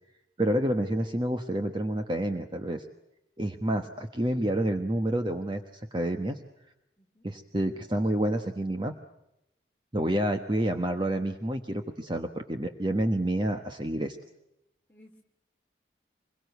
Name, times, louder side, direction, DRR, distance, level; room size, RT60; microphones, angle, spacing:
voice 1, 0.4-2.8 3.4-6.4 7.2-8.9 9.9-14.2, right 1 dB, 25° right, 5 dB, 1.1 m, -29 dB
voice 2, 7.0-7.3 14.9-15.2, left 1 dB, 10° left, -1 dB, 4.1 m, -57 dB
26.5 x 22.5 x 8.2 m, 0.88 s
head